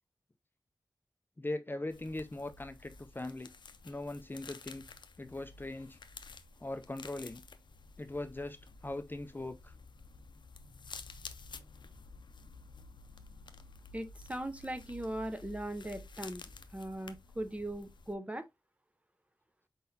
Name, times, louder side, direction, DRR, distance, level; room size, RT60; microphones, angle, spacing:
voice 1, 1.4-3.5 3.8-4.8 5.2-6.0 6.6-7.4 8.0-8.6 8.8-9.7, left 2 dB, 25° left, 0.5 m, -40 dB
sound 1, 1.9-18.1, left 3 dB, 85° left, 0.4 m, -52 dB
voice 2, 13.9-16.4 16.7-18.4, right 1 dB, 15° right, 0.6 m, -39 dB
4.4 x 3.9 x 2.7 m
wide cardioid pair, 75°, 8 cm